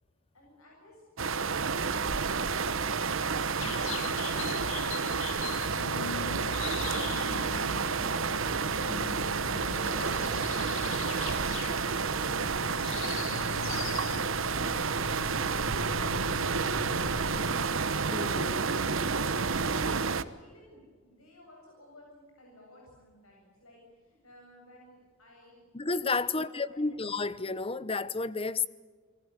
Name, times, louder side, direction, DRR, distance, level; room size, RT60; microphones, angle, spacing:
voice 1, 0.3-3.8 19.8-25.6 26.1-26.9, left 1 dB, 90° left, 7.8 m, -56 dB
sound 1, 1.2-20.2, right 5 dB, 65° right, 1.1 m, -30 dB
sound 2, 3.6-17.7, left 6 dB, 65° left, 0.8 m, -41 dB
voice 2, 18.1-18.6 25.7-28.7, left 4 dB, 25° left, 0.9 m, -31 dB
30.0 x 19.5 x 8.5 m
head